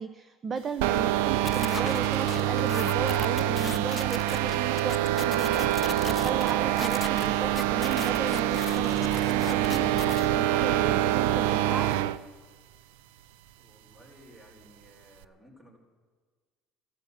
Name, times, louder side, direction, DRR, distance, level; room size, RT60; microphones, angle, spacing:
voice 1, 0.0-11.9, right 6 dB, 40° right, 11 dB, 0.8 m, -35 dB
sound 1, 0.8-12.2, right 13 dB, 80° right, 0.5 m, -26 dB
sound 2, 1.5-10.3, left 5 dB, 30° left, 0.4 m, -38 dB
voice 2, 13.6-15.8, equal, 20° right, 3 dB, 4.8 m, -55 dB
13.0 x 13.0 x 8.1 m, 1.5 s
hypercardioid pair, 75°, 0 cm